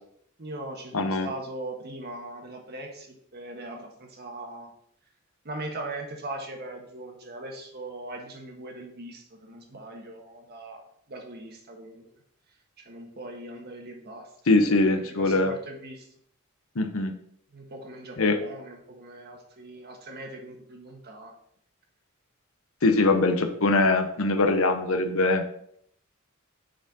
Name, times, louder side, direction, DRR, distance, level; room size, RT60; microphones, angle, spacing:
voice 1, 0.4-4.7 5.4-10.8 11.1-12.1 12.8-14.3 14.8-16.0 17.5-21.3, right 2 dB, 50° right, 2 dB, 1.3 m, -40 dB
voice 2, 0.9-1.3 14.5-15.5 16.8-17.1 18.2-18.4 22.8-25.4, left 2 dB, 70° left, 6 dB, 0.8 m, -22 dB
6.5 x 4.3 x 4.1 m, 0.68 s
head